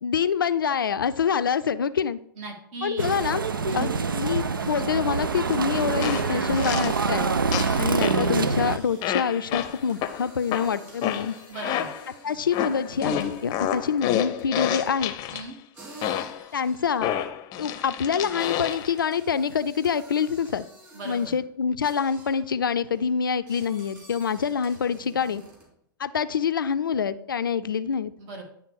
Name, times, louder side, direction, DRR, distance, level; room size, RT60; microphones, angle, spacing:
voice 1, 0.0-2.2 2.8-3.4 3.7-3.9 4.1-7.3 7.8-11.4 12.2-15.1 16.5-17.1 17.6-20.7 21.1-25.4 26.0-28.1, left 7 dB, 80° left, 13 dB, 0.4 m, -26 dB
voice 2, 2.4-3.2 3.7-3.9 7.5-7.8 11.5-11.9 15.3-15.5 20.9-21.3 28.2-28.4, right 3 dB, 50° right, 2 dB, 1.9 m, -37 dB
sound 1, 3.0-8.8, right 4 dB, 85° right, 0.4 m, -25 dB
sound 2, 5.5-5.6 6.0-7.0 7.5-8.3 9.0-12.1 12.5-15.4 16.0-16.5 17.0-18.9, left 10 dB, 35° left, 0.6 m, -29 dB
sound 3, 8.4-14.1 14.4-15.1 15.7-21.5 21.8-22.5 22.8-25.8, right 2 dB, 20° right, 2.9 m, -50 dB
10.5 x 3.5 x 4.7 m, 0.71 s
figure-of-eight pair, 95°, 11 cm